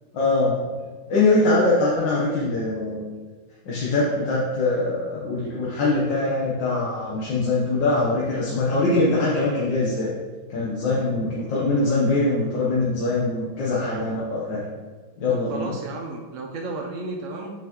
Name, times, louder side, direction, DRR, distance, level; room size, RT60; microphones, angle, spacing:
voice 1, 0.1-0.6 1.1-3.0 3.7-10.1 10.5-14.6 15.2-15.7, left 2 dB, 75° left, -6 dB, 1.8 m, -22 dB
voice 2, 15.3-17.5, right 2 dB, 65° right, 0 dB, 0.8 m, -33 dB
8.0 x 5.7 x 3.0 m, 1.4 s
omnidirectional pair, 2.1 m